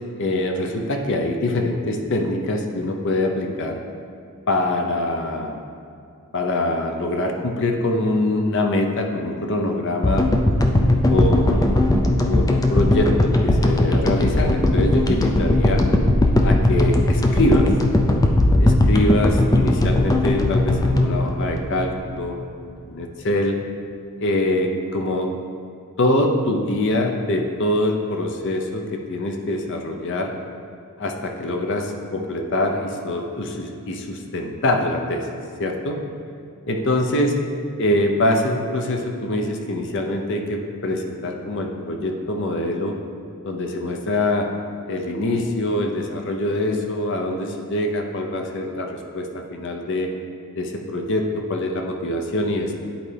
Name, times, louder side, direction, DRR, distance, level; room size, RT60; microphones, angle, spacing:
voice 1, 0.2-3.8 4.5-5.6 6.3-10.3 11.1-11.9 12.3-15.8 16.4-17.7 18.6-22.4 22.9-23.6 24.2-25.3 26.0-30.3 31.0-35.3 35.6-36.0 36.7-37.3 37.8-43.0 43.4-44.5 44.9-50.1 50.6-52.7, left 1 dB, 55° left, 3 dB, 0.6 m, -24 dB
sound 1, 10.0-22.4, left 1 dB, 15° left, 0.4 m, -18 dB
10.0 x 4.2 x 3.3 m, 2.5 s
head